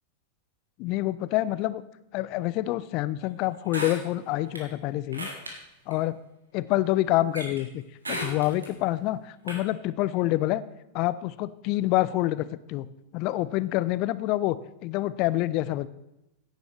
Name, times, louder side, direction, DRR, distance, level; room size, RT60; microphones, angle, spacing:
voice 1, 0.8-1.8 2.1-5.3 5.9-6.2 6.5-7.8 8.1-10.6 10.9-12.9 13.1-14.6 14.8-15.9, left 16 dB, 40° left, 17 dB, 0.5 m, -27 dB
sound 1, 3.7-4.6 5.1-5.5 5.9-6.0 7.3-7.6 8.0-8.7 9.5-9.6, right 1 dB, 75° right, 2.1 m, -34 dB
16.0 x 9.1 x 3.4 m, 0.91 s
figure-of-eight pair, 90°, 0 cm